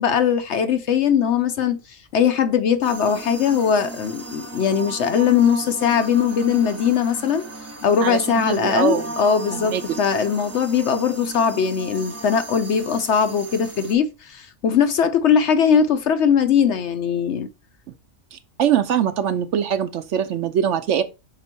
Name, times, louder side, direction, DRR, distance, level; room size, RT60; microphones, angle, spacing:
voice 1, 0.0-7.4 7.8-17.5, left 7 dB, 65° left, 0.9 m, -20 dB
sound 1, 2.8-13.9, right 2 dB, 15° right, 0.6 m, -36 dB
voice 2, 8.0-9.1 9.5-9.8 18.3-21.0, right 9 dB, 70° right, 0.9 m, -22 dB
5.9 x 4.4 x 4.4 m
omnidirectional pair, 1.3 m